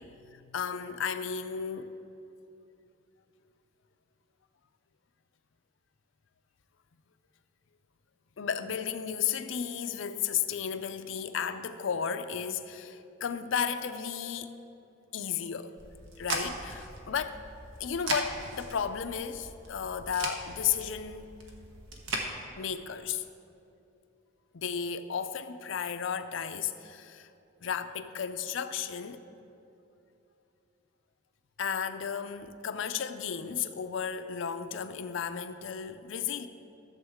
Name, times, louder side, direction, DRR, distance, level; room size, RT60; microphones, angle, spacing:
voice 1, 0.0-1.9 8.4-14.5 15.1-15.7 16.2-17.4 17.8-21.3 22.6-23.2 24.5-27.3 27.6-29.2 31.6-36.5, left 7 dB, 75° left, 0.5 m, -34 dB
sound 1, 15.8-22.3, right 2 dB, 80° right, 1.2 m, -38 dB
14.5 x 7.1 x 3.6 m
head